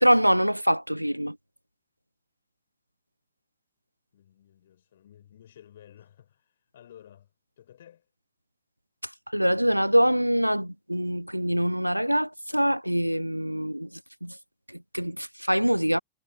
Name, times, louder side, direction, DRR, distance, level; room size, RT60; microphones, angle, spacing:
voice 1, 0.0-1.4 9.3-14.4 14.7-16.0, equal, 90° right, 0.3 m, -24 dB
voice 2, 4.1-7.3 7.6-8.1, left 10 dB, 60° left, 3.9 m, -53 dB
figure-of-eight pair, 90°, 0 cm